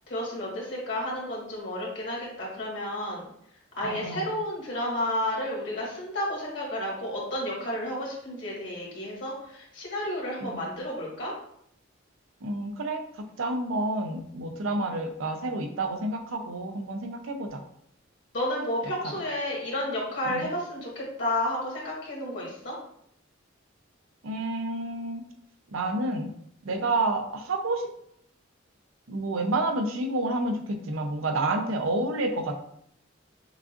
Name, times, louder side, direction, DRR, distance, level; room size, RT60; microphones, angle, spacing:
voice 1, 0.1-3.2 3.8-11.3 18.3-22.7, left 1 dB, 60° left, -5 dB, 1.6 m, -31 dB
voice 2, 3.8-4.3 10.4-10.6 12.4-17.6 19.0-19.1 20.2-20.5 24.2-25.3 25.7-26.3 26.6-27.9 29.1-32.5, right 2 dB, 85° right, 5 dB, 0.6 m, -29 dB
6.1 x 2.4 x 2.5 m, 0.72 s
head